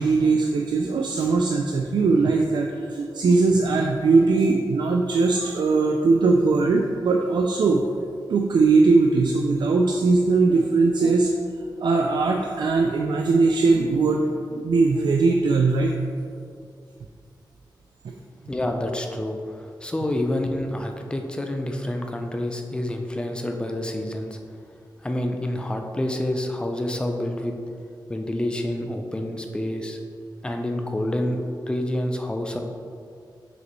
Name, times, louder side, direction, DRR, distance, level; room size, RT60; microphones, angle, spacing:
voice 1, 0.0-7.8 8.3-11.3 11.8-16.0, right 3 dB, 70° right, 2 dB, 0.4 m, -20 dB
voice 2, 18.5-24.4 25.0-27.5 28.1-30.0 30.4-31.4 31.7-32.6, left 1 dB, 10° left, 4 dB, 0.4 m, -28 dB
6.0 x 5.1 x 3.1 m, 2.3 s
wide cardioid pair, 160°, 8 cm